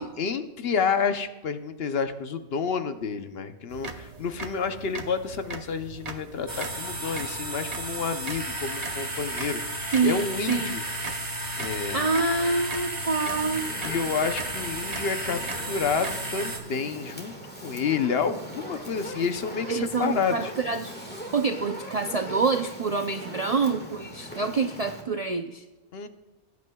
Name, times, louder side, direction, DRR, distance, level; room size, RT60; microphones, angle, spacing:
voice 1, 0.0-10.8 11.6-12.0 13.8-15.4 15.6-17.3 17.6-20.5 25.9-26.1, left 5 dB, 60° left, 9 dB, 0.9 m, -29 dB
sound 1, 3.7-16.1, right 3 dB, 35° right, 0.9 m, -41 dB
sound 2, 6.5-16.6, right 1 dB, 15° right, 2.1 m, -33 dB
voice 2, 9.9-10.8 11.9-13.7 19.7-20.9 21.3-25.6, right 4 dB, 50° right, 7 dB, 0.4 m, -26 dB
Fire, 13.3-25.0, equal, 10° left, 1.6 m, -41 dB
20.0 x 9.5 x 2.3 m, 1.2 s
omnidirectional pair, 1.2 m